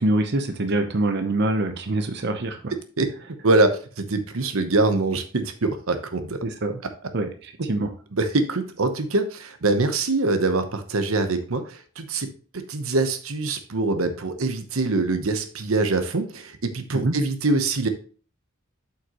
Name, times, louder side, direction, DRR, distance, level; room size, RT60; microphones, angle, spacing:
voice 1, 0.0-2.7 6.4-6.8 7.1-7.9 16.9-17.2, right 2 dB, 50° right, 6 dB, 0.8 m, -25 dB
voice 2, 3.4-6.4 8.2-12.3 12.7-17.9, right 2 dB, 80° right, 8 dB, 0.9 m, -24 dB
7.7 x 5.8 x 3.0 m, 0.40 s
head